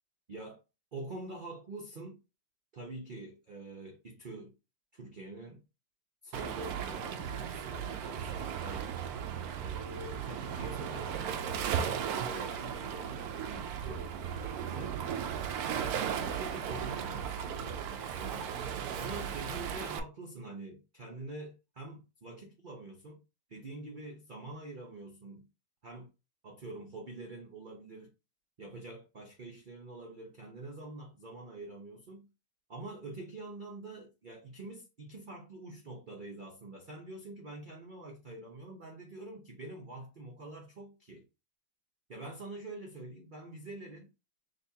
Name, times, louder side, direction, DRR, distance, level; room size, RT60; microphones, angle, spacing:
voice 1, 0.3-0.6 0.9-2.2 2.7-4.5 4.9-5.6 6.2-9.0 9.6-13.2 13.5-14.9 16.0-18.5 18.9-23.2 23.5-25.5 25.8-26.1 26.4-28.1 28.6-32.3 32.7-41.2 42.1-44.1, right 2 dB, 50° right, 0.6 m, -46 dB
Waves surf, 6.3-20.0, right 8 dB, 70° right, 1.0 m, -36 dB
6.4 x 2.4 x 2.7 m
omnidirectional pair, 1.9 m